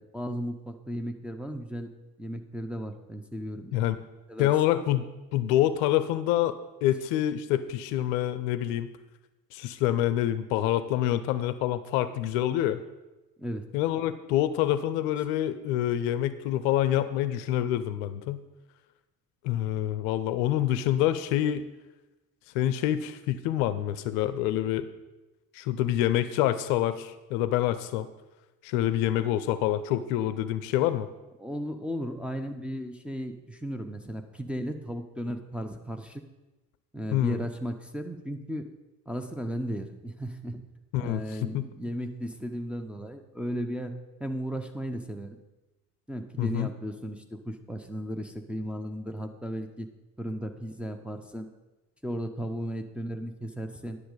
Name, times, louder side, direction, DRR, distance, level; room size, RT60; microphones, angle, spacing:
voice 1, 0.0-1.9 2.2-3.8 4.3-4.5 13.4-13.6 31.4-36.2 36.9-38.7 39.1-40.6 41.0-43.9 44.2-45.4 46.1-49.9 50.2-51.5 52.0-54.0, equal, ahead, 3 dB, 0.7 m, -35 dB
voice 2, 4.4-5.1 5.3-8.9 9.5-12.8 13.7-18.4 19.4-21.7 22.5-24.9 25.5-28.1 28.6-31.1 37.1-37.4 40.9-41.7 46.4-46.7, left 12 dB, 55° left, 13 dB, 0.6 m, -26 dB
10.0 x 6.4 x 5.2 m, 1.1 s
figure-of-eight pair, 60°, 48 cm